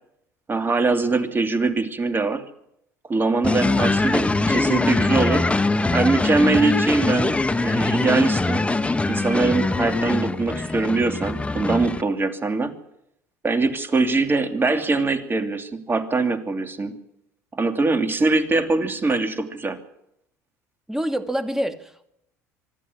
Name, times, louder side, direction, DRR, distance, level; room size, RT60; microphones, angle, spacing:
voice 1, 0.5-2.4 3.1-5.4 5.9-8.6 9.1-12.7 13.4-16.9 17.5-19.8, right 3 dB, 25° right, 8 dB, 2.8 m, -22 dB
sound 1, 3.4-12.0, left 3 dB, 15° left, 1.3 m, -22 dB
voice 2, 20.9-22.1, equal, 5° right, 9 dB, 2.3 m, -26 dB
25.0 x 11.5 x 9.9 m, 0.77 s
hypercardioid pair, 65°, 8 cm